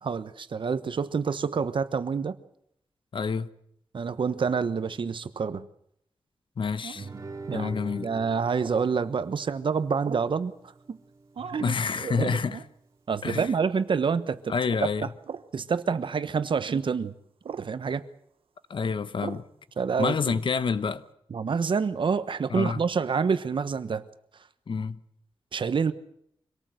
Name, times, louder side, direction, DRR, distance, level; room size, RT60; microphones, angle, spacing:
voice 1, 0.0-2.4 3.9-5.7 7.5-7.7 8.0-11.0 11.5-12.4 13.1-14.5 15.0-15.1 15.5-17.1 17.6-18.0 19.8-20.4 21.3-24.1 25.5-25.9, right 5 dB, 65° right, 1.2 m, -27 dB
voice 2, 3.1-3.5 6.6-7.1 7.5-8.1 11.4-12.6 13.2-13.5 14.5-15.1 18.7-19.4 20.0-21.0 22.5-22.8 24.7-25.0, left 5 dB, 65° left, 1.1 m, -28 dB
sound 1, 6.8-7.2 8.6-8.9 10.0-10.4 11.3-11.7 12.5-12.7 13.3-13.6 14.6-14.8 15.2-15.5 16.7-16.8 17.4-17.7 19.2-19.5, right 7 dB, 90° right, 0.9 m, -39 dB
Guitar, 6.9-12.0, right 3 dB, 40° right, 2.7 m, -45 dB
25.5 x 18.0 x 7.9 m
wide cardioid pair, 100°, 9 cm